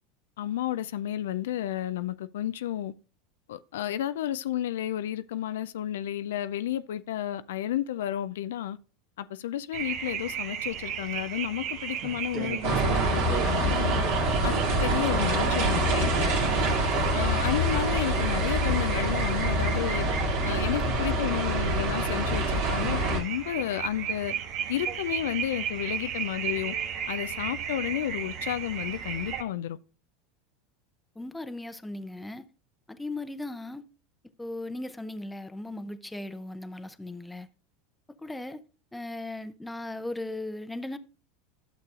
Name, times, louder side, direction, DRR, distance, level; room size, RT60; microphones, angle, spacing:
voice 1, 0.4-2.9 3.5-8.8 9.2-14.0 14.4-16.5 17.1-20.1 20.4-24.3 24.7-26.8 27.1-29.8, left 12 dB, 75° left, 0.3 m, -32 dB
sound 1, 9.7-29.4, right 8 dB, 55° right, 1.3 m, -35 dB
sound 2, 12.6-23.2, right 1 dB, 70° right, 2.3 m, -26 dB
voice 2, 31.2-32.4 32.9-33.8 34.4-37.5 38.2-38.6 38.9-41.0, left 2 dB, 5° left, 0.7 m, -37 dB
12.0 x 6.7 x 2.4 m
hypercardioid pair, 90°, 0 cm